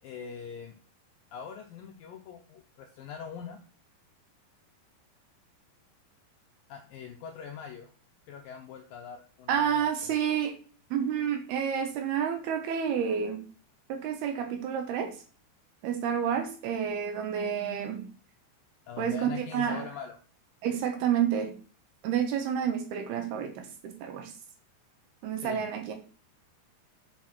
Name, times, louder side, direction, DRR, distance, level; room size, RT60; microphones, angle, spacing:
voice 1, 0.0-0.8 1.3-3.6 6.7-7.9 8.3-10.4 18.9-20.2 25.4-25.6, left 7 dB, 75° left, 3 dB, 2.1 m, -43 dB
voice 2, 9.5-10.5 10.9-13.4 13.9-15.2 15.8-18.1 19.0-19.9 20.6-21.6 22.0-24.3 25.2-26.0, right 8 dB, 70° right, 6 dB, 2.9 m, -29 dB
7.5 x 7.0 x 6.0 m, 0.39 s
omnidirectional pair, 5.2 m